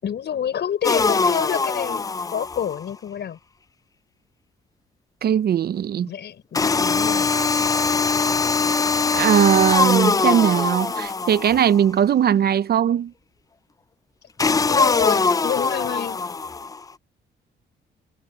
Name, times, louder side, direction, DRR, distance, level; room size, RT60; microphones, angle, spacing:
voice 1, 0.0-3.4 6.1-7.3 14.6-16.2, left 9 dB, 60° left, 5.9 m, -28 dB
sound 1, 0.8-2.8 6.5-11.8 14.4-16.8, left 4 dB, 15° left, 0.4 m, -22 dB
voice 2, 5.2-6.1 9.1-13.1, right 9 dB, 50° right, 0.6 m, -19 dB
cardioid pair, 90°, 20 cm